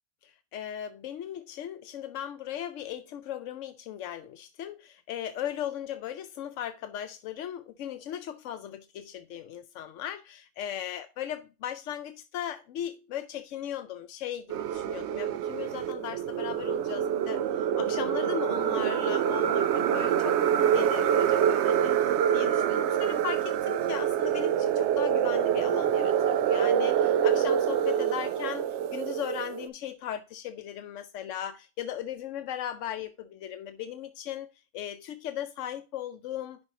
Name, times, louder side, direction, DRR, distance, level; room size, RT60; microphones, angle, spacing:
voice 1, 0.2-34.5 34.7-36.6, left 10 dB, 90° left, 0.9 m, -37 dB
sound 1, 14.5-29.7, right 9 dB, 70° right, 0.8 m, -26 dB
10.5 x 4.4 x 2.8 m
omnidirectional pair, 1.2 m